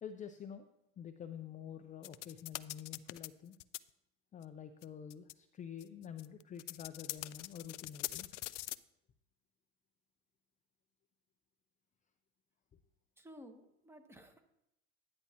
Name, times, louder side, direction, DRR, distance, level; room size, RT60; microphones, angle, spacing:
voice 1, 0.0-0.7 1.0-3.6 4.3-8.3, left 8 dB, 20° left, 8 dB, 0.5 m, -48 dB
sound 1, 2.0-3.3 3.5-3.8 4.4-4.5 4.8-4.9 5.1-5.3 5.8-8.8, left 18 dB, 85° left, 0.5 m, -43 dB
voice 2, 13.2-14.6, equal, 5° right, 6 dB, 1.1 m, -55 dB
10.0 x 9.5 x 2.9 m, 0.83 s
hypercardioid pair, 100°, 35 cm